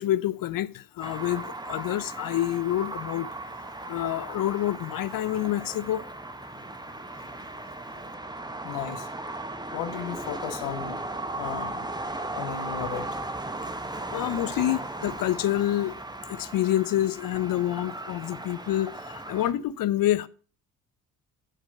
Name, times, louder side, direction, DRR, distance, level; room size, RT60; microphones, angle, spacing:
voice 1, 0.0-3.3 3.9-6.0 14.1-15.9 16.3-20.3, left 13 dB, 45° left, 0.6 m, -27 dB
sound 1, 1.0-19.5, right 2 dB, 10° right, 1.0 m, -37 dB
voice 2, 8.6-9.1 9.7-11.0 11.4-11.9 12.3-13.2, left 9 dB, 65° left, 1.0 m, -35 dB
7.9 x 7.4 x 5.3 m
figure-of-eight pair, 45°, 47 cm